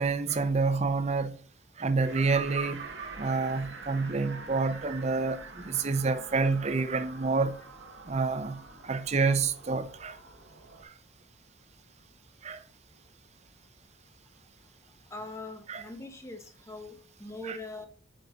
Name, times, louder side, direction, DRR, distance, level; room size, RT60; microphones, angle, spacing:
voice 1, 0.0-1.4 1.8-7.6 8.1-10.2 12.4-12.6 15.7-15.8 17.4-17.6, right 4 dB, 35° right, 0.6 m, -28 dB
sound 1, 2.0-10.8, right 3 dB, 60° right, 1.1 m, -46 dB
voice 2, 15.1-17.9, left 2 dB, 15° left, 0.8 m, -42 dB
7.7 x 5.2 x 2.4 m
head